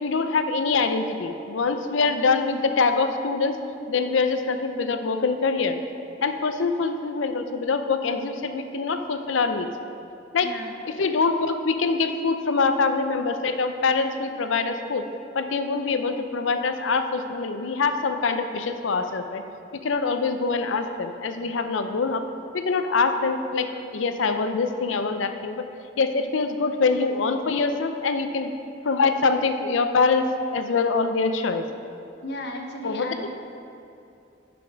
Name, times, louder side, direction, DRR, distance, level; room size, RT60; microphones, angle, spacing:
voice 1, 0.0-3.6 3.9-5.8 6.2-9.7 10.3-10.5 11.0-15.1 15.3-19.4 19.8-22.2 22.5-23.7 23.9-25.6 26.0-28.5 28.8-30.2 30.5-31.6 32.8-33.3, left 4 dB, 85° left, 8 dB, 0.6 m, -24 dB
voice 2, 10.4-10.8 32.2-33.3, left 1 dB, 60° left, 3 dB, 0.8 m, -35 dB
11.0 x 5.2 x 4.6 m, 2.6 s
head